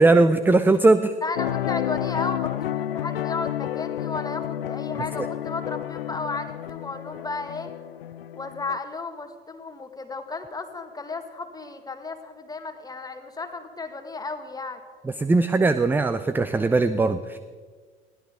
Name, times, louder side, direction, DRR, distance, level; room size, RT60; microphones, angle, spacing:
voice 1, 0.0-1.1 15.2-17.4, right 3 dB, 5° right, 12 dB, 0.5 m, -19 dB
voice 2, 1.2-7.7 8.3-14.8, left 3 dB, 15° left, 7 dB, 1.8 m, -34 dB
sound 1, 1.4-8.8, left 12 dB, 75° left, 0.5 m, -30 dB
21.5 x 16.5 x 3.8 m, 1.5 s
figure-of-eight pair, 70°, 29 cm